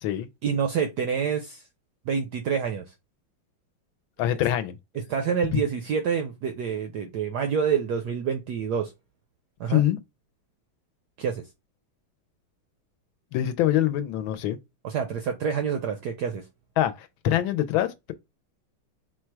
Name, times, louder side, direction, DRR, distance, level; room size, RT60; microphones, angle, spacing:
voice 1, 0.4-1.6 2.1-2.8 5.1-8.9 9.6-9.8 11.2-11.4 14.8-16.4, right 7 dB, 75° right, 0.9 m, -27 dB
voice 2, 4.2-4.8 5.5-5.6 9.7-10.0 13.3-14.6 16.8-18.1, left 12 dB, 75° left, 1.3 m, -24 dB
4.3 x 2.2 x 4.5 m
omnidirectional pair, 2.3 m